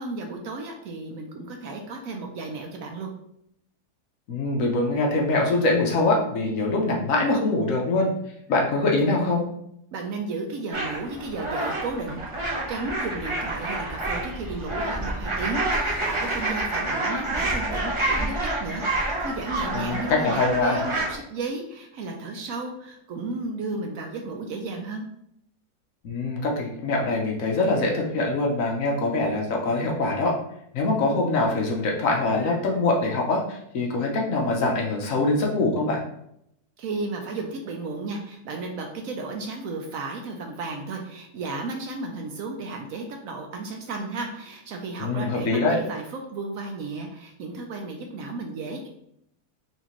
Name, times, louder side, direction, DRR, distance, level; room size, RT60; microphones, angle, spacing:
voice 1, 0.0-3.1 9.9-25.0 36.8-48.9, right 3 dB, 70° right, 3 dB, 0.9 m, -34 dB
voice 2, 4.3-8.1 8.5-9.5 19.7-20.8 26.0-30.3 30.7-36.0 45.0-45.8, left 2 dB, 65° left, -1 dB, 1.0 m, -23 dB
sound 1, 10.7-21.2, right 2 dB, 40° right, 0.4 m, -28 dB
4.3 x 2.9 x 2.9 m, 0.75 s
omnidirectional pair, 1.7 m